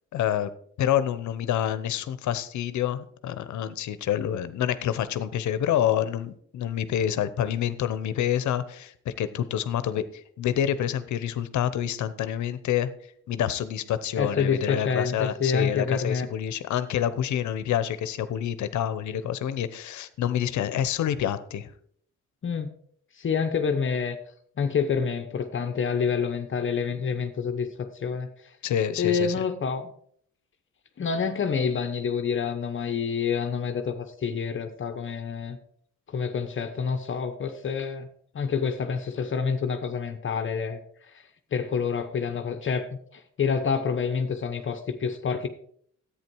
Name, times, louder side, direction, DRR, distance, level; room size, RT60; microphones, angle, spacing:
voice 1, 0.1-0.5 0.8-12.9 13.3-21.7 28.6-29.3, left 10 dB, 75° left, 14 dB, 0.9 m, -27 dB
voice 2, 14.2-16.3 22.4-22.7 23.2-24.2 24.6-28.3 29.0-29.9 31.0-35.6 36.1-38.1 38.3-40.8 41.1-41.2 41.5-45.5, left 6 dB, 40° left, 7 dB, 1.0 m, -27 dB
10.5 x 8.8 x 4.7 m, 0.63 s
cardioid pair, 110°, 30 cm